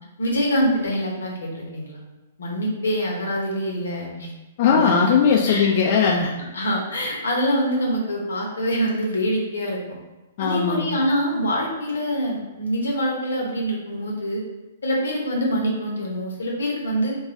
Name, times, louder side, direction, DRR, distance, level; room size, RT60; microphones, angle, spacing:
voice 1, 0.2-2.0 2.4-4.3 4.7-4.8 5.5-5.7 6.5-9.8 10.4-14.4 14.8-17.2, equal, 85° left, -2 dB, 0.8 m, -25 dB
voice 2, 4.6-6.3 10.4-10.9, left 6 dB, 50° left, -1 dB, 0.3 m, -19 dB
2.3 x 2.3 x 4.0 m, 1.1 s
hypercardioid pair, 125°, 0 cm